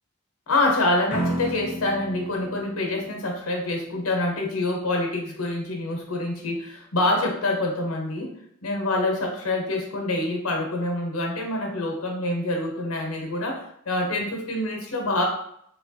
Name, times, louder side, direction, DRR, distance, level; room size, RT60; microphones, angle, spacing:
voice 1, 0.5-8.3 8.6-15.2, left 2 dB, 75° left, 1 dB, 0.8 m, -26 dB
sound 1, 1.1-4.0, right 1 dB, 40° left, 0.6 m, -33 dB
3.1 x 2.3 x 2.6 m, 0.71 s
head